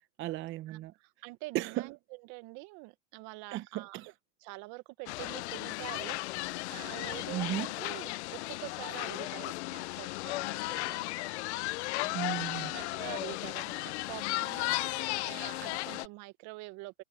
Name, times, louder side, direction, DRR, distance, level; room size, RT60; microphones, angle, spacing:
voice 1, 0.0-0.9 1.5-1.9 3.5-4.1 7.3-7.7 12.1-12.7, right 15 dB, 30° right, 0.8 m, -35 dB
voice 2, 0.7-4.0 4.4-11.0 12.7-17.0, right 23 dB, 50° right, 1.3 m, -46 dB
sound 1, 5.1-16.1, left 22 dB, 65° left, 0.5 m, -35 dB
supercardioid pair, 130°, 37 cm